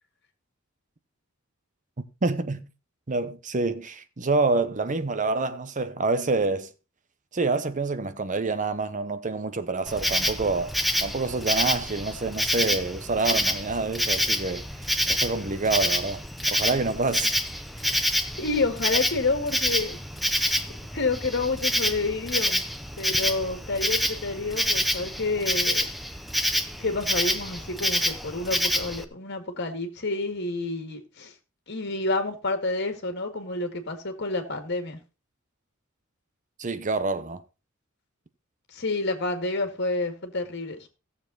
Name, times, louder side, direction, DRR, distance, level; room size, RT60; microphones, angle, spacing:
voice 1, 2.2-2.7 3.1-6.7 7.3-10.7 11.0-16.2 16.5-17.3 36.6-37.4, right 3 dB, 40° right, 0.9 m, -27 dB
Insect, 9.9-29.0, equal, ahead, 0.8 m, -27 dB
voice 2, 18.4-20.0 20.9-22.7 23.0-25.9 26.8-31.3 31.7-35.0 38.7-40.9, left 3 dB, 55° left, 2.1 m, -29 dB
16.0 x 7.0 x 3.9 m
head